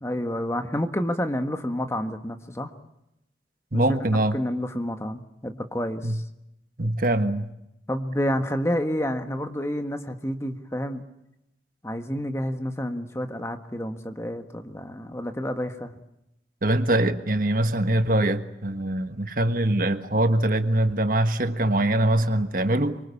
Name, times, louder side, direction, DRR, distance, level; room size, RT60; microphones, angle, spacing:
voice 1, 0.0-2.7 3.7-4.0 4.3-6.2 7.9-11.0 11.8-15.9, equal, 15° left, 7 dB, 1.6 m, -29 dB
voice 2, 3.7-4.4 6.0-6.2 6.8-7.5 16.6-23.0, right 1 dB, 50° right, 9 dB, 1.5 m, -23 dB
26.0 x 24.0 x 8.4 m, 0.85 s
head